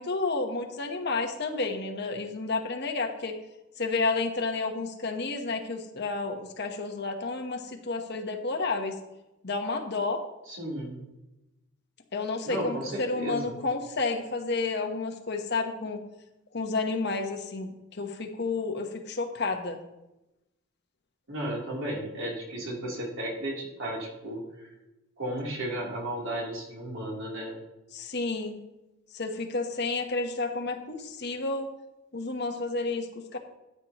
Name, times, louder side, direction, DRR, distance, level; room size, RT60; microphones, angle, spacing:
voice 1, 0.0-3.3 3.8-9.0 9.4-10.2 12.1-16.0 16.5-19.8 27.9-28.6 29.1-31.7 32.1-33.4, left 3 dB, 55° left, 5 dB, 1.1 m, -31 dB
voice 2, 10.5-11.0 12.4-13.5 21.3-24.7 25.2-27.6, right 1 dB, 85° right, -3 dB, 3.5 m, -34 dB
14.0 x 8.6 x 3.0 m, 0.96 s
head